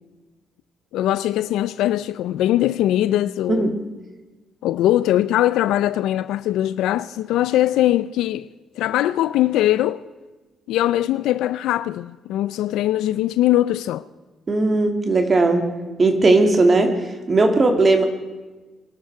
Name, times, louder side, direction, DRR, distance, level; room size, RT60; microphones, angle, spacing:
voice 1, 0.9-3.8 4.6-8.5 8.8-10.0 10.7-14.0, left 13 dB, 90° left, 0.4 m, -21 dB
voice 2, 14.5-15.7 16.0-16.9 17.3-18.0, right 2 dB, 35° right, 2.5 m, -17 dB
23.0 x 12.0 x 4.7 m
cardioid pair, 90°, 0 cm